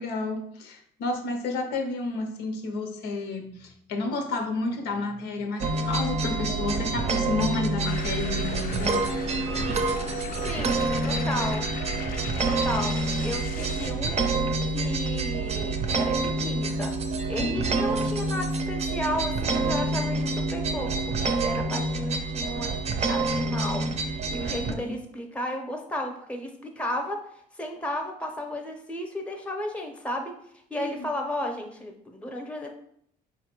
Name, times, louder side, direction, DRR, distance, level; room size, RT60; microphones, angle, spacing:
voice 1, 0.0-9.1 17.4-17.9 24.4-25.0 30.8-31.1, left 3 dB, 90° left, 4 dB, 0.8 m, -31 dB
sound 1, 5.6-24.7, right 3 dB, 40° right, 0.5 m, -27 dB
sound 2, 7.9-13.9, left 5 dB, 60° left, 0.5 m, -37 dB
voice 2, 10.3-11.7 12.4-12.9 13.2-14.2 14.7-22.7 23.0-27.2 27.6-30.3 30.7-32.7, left 1 dB, 5° left, 3 dB, 0.7 m, -34 dB
4.7 x 2.2 x 4.3 m, 0.70 s
cardioid pair, 110°, 17 cm